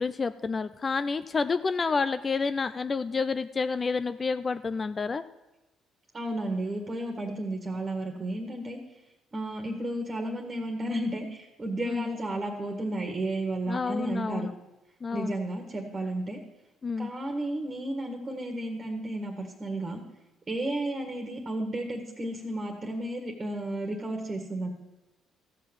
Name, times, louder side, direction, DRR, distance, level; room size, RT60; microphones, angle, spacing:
voice 1, 0.0-5.2 11.9-12.1 13.7-14.5 15.0-15.4 16.8-17.1, left 4 dB, 35° left, 12 dB, 0.4 m, -29 dB
voice 2, 6.1-8.8 9.3-14.5 15.1-16.4 17.0-20.0 20.5-24.7, right 1 dB, 30° right, 3 dB, 1.7 m, -33 dB
14.0 x 5.8 x 7.1 m, 0.99 s
supercardioid pair, 85°, 0 cm